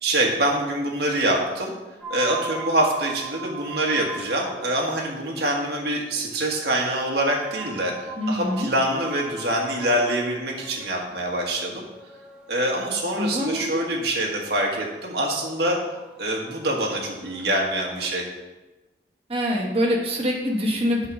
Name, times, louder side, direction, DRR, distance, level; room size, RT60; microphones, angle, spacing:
voice 1, 0.0-1.7 2.1-7.9 8.3-11.8 12.5-15.8 16.2-18.2, right 1 dB, 60° right, -1 dB, 1.6 m, -25 dB
sound 1, 2.0-18.1, right 3 dB, 5° right, 0.8 m, -41 dB
voice 2, 8.2-8.7 13.2-13.8 19.3-21.0, equal, 30° right, -1 dB, 1.3 m, -24 dB
7.9 x 4.0 x 6.2 m, 1.1 s
head